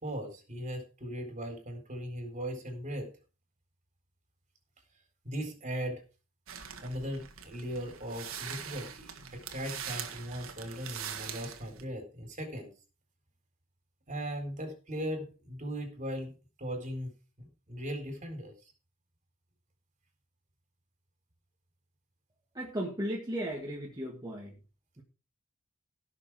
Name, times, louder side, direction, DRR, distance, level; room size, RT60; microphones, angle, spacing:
voice 1, 0.0-3.1 5.2-6.0 6.8-12.7 14.1-16.3 16.6-17.1 17.4-18.5, equal, 40° right, 4 dB, 4.0 m, -38 dB
sound 1, 6.5-11.8, right 8 dB, 90° right, 1.7 m, -43 dB
voice 2, 22.6-24.5, equal, 20° right, -2 dB, 1.9 m, -35 dB
16.5 x 6.5 x 4.8 m, 0.35 s
head